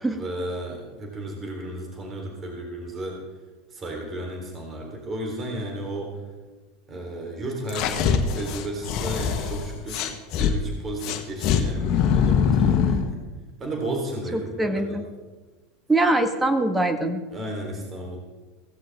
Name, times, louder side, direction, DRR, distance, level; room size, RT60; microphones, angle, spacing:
voice 1, 0.1-3.2 3.7-6.1 6.9-13.2 13.6-15.0 17.3-18.2, right 1 dB, 30° right, 1 dB, 3.6 m, -33 dB
sound 1, 7.7-10.5 11.0-13.1, left 7 dB, 50° left, 1.3 m, -23 dB
voice 2, 14.3-15.0 15.9-17.2, right 2 dB, 10° right, 7 dB, 1.6 m, -23 dB
16.5 x 15.5 x 3.6 m, 1.3 s
hypercardioid pair, 85°, 0 cm